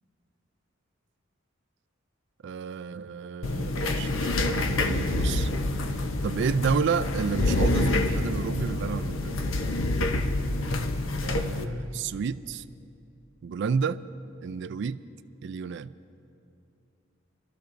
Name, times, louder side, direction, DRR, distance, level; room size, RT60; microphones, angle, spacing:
voice 1, 2.4-5.5 5.9-6.0 6.2-9.5 11.2-12.6 13.4-14.0 14.4-15.0 15.4-15.9, right 6 dB, 60° right, 14 dB, 0.3 m, -31 dB
sound 1, 3.4-11.6, left 2 dB, 75° left, 0.7 m, -27 dB
25.5 x 13.0 x 2.6 m, 2.6 s
head